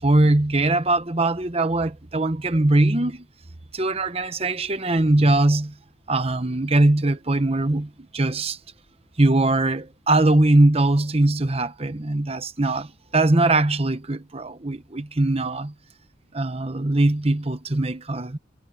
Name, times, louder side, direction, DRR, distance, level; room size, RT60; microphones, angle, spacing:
voice 1, 0.0-3.2 3.7-5.7 6.1-8.6 9.2-15.7 16.3-18.4, right 2 dB, 30° right, 1.0 m, -21 dB
head